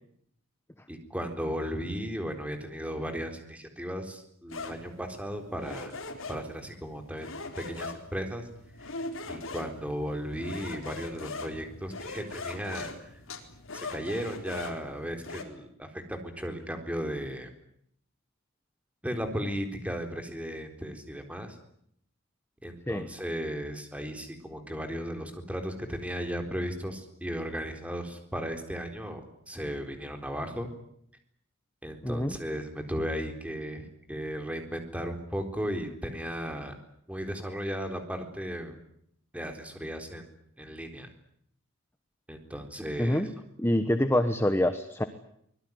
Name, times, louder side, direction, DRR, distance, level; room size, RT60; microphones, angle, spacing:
voice 1, 0.9-6.0 6.3-7.3 7.6-8.5 8.8-8.9 9.3-13.2 13.7-17.5 19.0-21.6 22.6-29.2 29.5-30.7 31.8-36.7 37.1-38.7 39.3-40.2 40.6-41.1 42.3-43.3, equal, 5° right, 5 dB, 4.0 m, -35 dB
sound 1, 4.5-15.4, left 3 dB, 65° left, 4.1 m, -41 dB
voice 2, 32.0-32.4 43.0-43.3 43.6-45.0, left 1 dB, 10° left, 9 dB, 1.1 m, -26 dB
25.0 x 21.0 x 9.5 m, 0.72 s
head